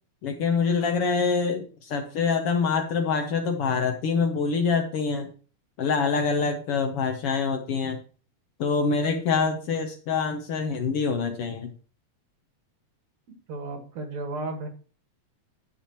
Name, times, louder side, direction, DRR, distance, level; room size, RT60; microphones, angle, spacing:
voice 1, 0.2-5.3 5.8-8.0 8.6-11.7, left 5 dB, 65° left, 5 dB, 1.6 m, -25 dB
voice 2, 13.5-14.7, right 2 dB, 70° right, 4 dB, 2.8 m, -34 dB
10.0 x 8.5 x 3.0 m, 0.37 s
omnidirectional pair, 3.4 m